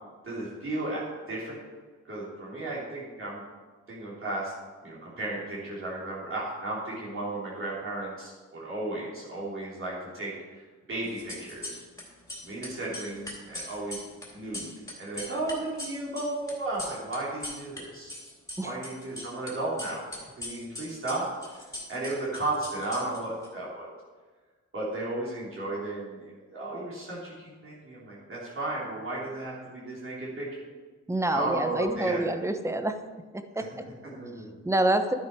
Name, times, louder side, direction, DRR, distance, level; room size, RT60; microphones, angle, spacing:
voice 1, 0.2-1.0 1.3-1.6 2.1-3.4 3.9-4.5 4.8-10.3 10.9-11.8 12.4-14.0 14.3-14.7 15.0-18.1 18.6-20.1 20.4-21.3 21.9-23.9 24.7-30.5 31.3-32.2 33.6-33.7 34.0-34.5, right 2 dB, 45° right, -6 dB, 3.5 m, -34 dB
sound 1, 11.1-12.0 12.3-17.8 18.1-19.5 19.8-23.5, left 1 dB, 10° left, 3.4 m, -40 dB
voice 2, 31.1-33.0 33.6-33.8 34.6-35.1, right 1 dB, 10° right, 8 dB, 0.8 m, -27 dB
12.0 x 9.3 x 4.8 m, 1.4 s
wide cardioid pair, 135°, 30 cm